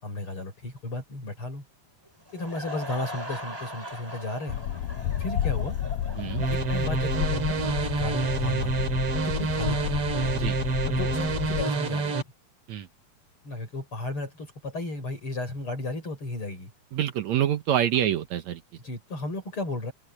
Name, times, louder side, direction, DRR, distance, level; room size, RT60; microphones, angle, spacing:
voice 1, 0.0-1.6 2.3-4.6 5.2-5.8 6.5-9.9 10.8-12.1 13.4-16.7 18.8-19.9, left 2 dB, 40° left, 6.3 m, -34 dB
Laughter / Crowd, 2.1-8.4, equal, 5° right, 4.6 m, -40 dB
sound 1, 4.5-11.7, left 11 dB, 70° left, 1.8 m, -31 dB
sound 2, 6.4-12.2, right 4 dB, 50° right, 3.0 m, -28 dB
voice 2, 16.9-18.6, right 10 dB, 70° right, 2.1 m, -26 dB
open air
omnidirectional pair, 3.6 m